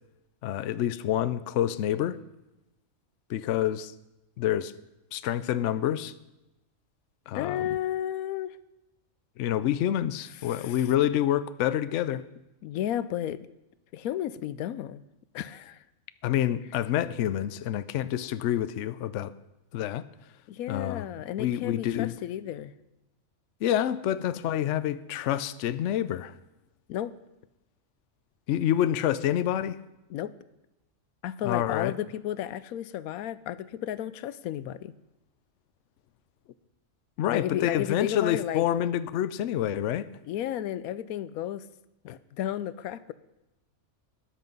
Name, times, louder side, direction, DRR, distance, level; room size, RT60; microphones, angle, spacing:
voice 1, 0.4-2.2 3.3-3.9 4.4-4.7 5.1-6.1 7.3-7.7 9.4-12.2 16.2-19.3 19.7-20.0 20.7-21.1 21.4-22.1 23.6-26.3 28.5-29.8 31.4-31.9 37.2-40.1, left 11 dB, 70° left, 0.9 m, -27 dB
voice 2, 7.3-8.6 10.4-10.9 12.6-13.4 13.9-15.0 15.3-15.8 20.5-22.7 26.9-27.1 30.1-30.3 31.2-34.9 37.3-38.7 40.3-41.7 42.0-43.1, left 11 dB, 90° left, 1.1 m, -33 dB
13.0 x 10.5 x 5.4 m
omnidirectional pair, 1.5 m